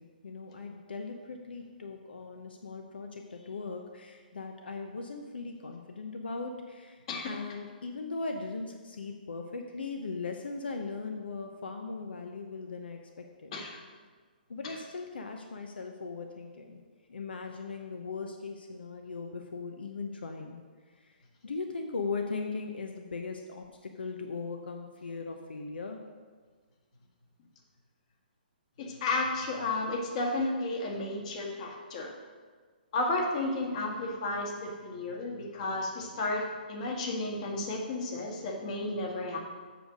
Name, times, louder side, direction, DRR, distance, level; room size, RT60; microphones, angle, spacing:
voice 1, 0.0-13.5 14.5-16.8 17.1-20.6 21.0-21.2 21.4-26.0, left 4 dB, 85° left, 4 dB, 0.8 m, -39 dB
voice 2, 13.5-13.8 28.8-32.1 32.9-39.4, left 2 dB, 45° left, 0 dB, 1.7 m, -32 dB
7.8 x 6.4 x 5.1 m, 1.5 s
hypercardioid pair, 150°, 5 cm